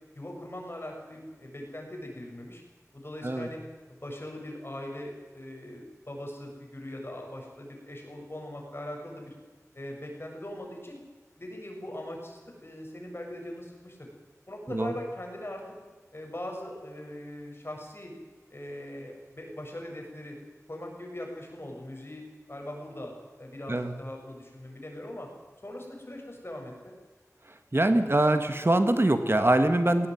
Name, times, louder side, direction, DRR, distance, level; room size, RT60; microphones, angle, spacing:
voice 1, 0.1-2.6 2.9-3.6 3.9-9.3 9.7-11.0 11.4-14.1 14.5-15.6 16.1-18.1 18.5-20.4 20.7-23.1 23.4-25.3 25.6-27.0, left 1 dB, 40° left, 1 dB, 7.3 m, -40 dB
voice 2, 27.7-30.1, right 1 dB, 40° right, 8 dB, 1.7 m, -23 dB
19.5 x 18.0 x 9.4 m, 1.3 s
wide cardioid pair, 50°, 6 cm